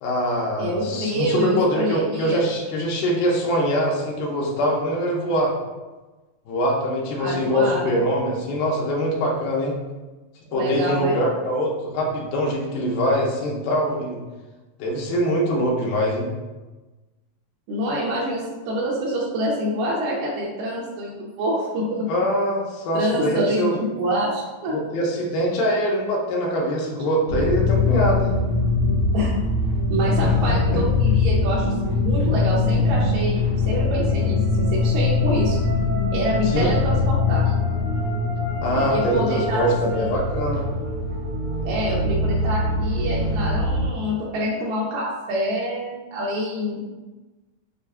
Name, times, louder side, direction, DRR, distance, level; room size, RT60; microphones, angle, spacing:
voice 1, 0.0-5.5 6.5-9.7 10.5-14.2 14.8-16.3 22.1-23.8 24.7-28.4 30.2-30.3 30.7-30.8 36.4-36.8 38.6-40.7, equal, 80° left, -2 dB, 2.4 m, -23 dB
voice 2, 0.6-2.4 7.2-8.0 10.5-11.2 17.7-22.1 22.9-24.8 29.1-29.4 29.9-35.6 36.1-37.5 38.8-40.1 41.7-46.9, equal, 80° right, -6 dB, 2.0 m, -26 dB
sound 1, 27.3-43.9, left 3 dB, 60° right, 1.5 m, -22 dB
6.5 x 2.4 x 2.3 m, 1.2 s
omnidirectional pair, 4.3 m